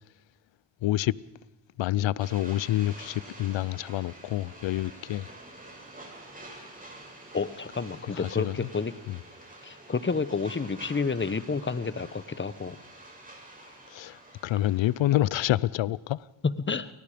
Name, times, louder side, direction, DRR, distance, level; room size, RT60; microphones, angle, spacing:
voice 1, 0.8-1.2 1.8-5.3 8.1-8.7 9.1-9.2 13.9-16.3, left 14 dB, 70° left, 0.7 m, -28 dB
sound 1, 2.2-15.2, right 1 dB, 15° right, 7.2 m, -48 dB
voice 2, 7.3-8.9 9.6-12.8 16.4-16.9, left 4 dB, 25° left, 1.2 m, -30 dB
28.5 x 19.5 x 5.2 m
supercardioid pair, 60°, 47 cm